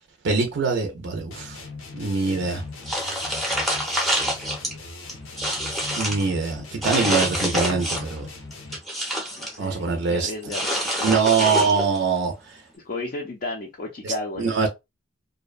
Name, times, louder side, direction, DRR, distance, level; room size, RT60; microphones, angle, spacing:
voice 1, 0.2-1.6 1.9-2.6 6.0-8.3 9.6-10.3 11.0-12.3 14.0-14.1 14.4-14.7, right 5 dB, 60° right, 0.5 m, -23 dB
sound 1, 1.3-9.0, left 3 dB, 85° left, 0.7 m, -40 dB
sound 2, 2.9-4.7 5.1-6.2 6.8-8.2 8.5-9.6 10.5-12.0, equal, ahead, 0.6 m, -26 dB
voice 2, 9.4-11.7 12.8-14.7, left 2 dB, 45° left, 0.4 m, -33 dB
2.6 x 2.1 x 2.3 m
head